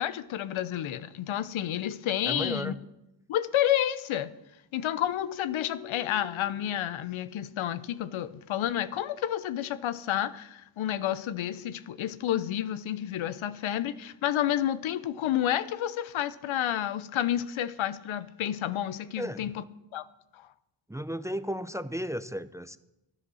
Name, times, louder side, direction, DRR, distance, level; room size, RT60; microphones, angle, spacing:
voice 1, 0.0-2.7 3.3-4.3 4.7-19.6 19.9-20.1 20.4-20.5, left 11 dB, 85° left, 0.7 m, -30 dB
voice 2, 2.2-2.8 19.2-19.5 20.9-22.8, equal, 5° right, 0.5 m, -34 dB
Keyboard (musical), 5.1-7.9, left 9 dB, 55° left, 1.0 m, -46 dB
12.5 x 10.5 x 6.3 m
cardioid pair, 80°, 46 cm